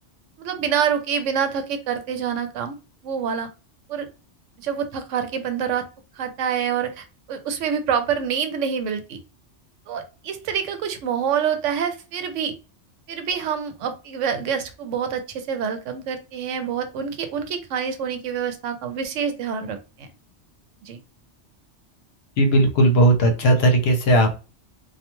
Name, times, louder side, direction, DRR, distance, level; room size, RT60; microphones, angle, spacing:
voice 1, 0.4-2.8 3.0-3.5 3.9-4.1 4.6-5.9 6.2-9.2 9.9-12.5 13.1-20.1 20.8-21.0, right 7 dB, 85° right, 8 dB, 0.9 m, -26 dB
voice 2, 22.4-24.4, right 1 dB, 65° left, 4 dB, 0.8 m, -17 dB
2.3 x 2.3 x 2.9 m, 0.31 s
omnidirectional pair, 1.2 m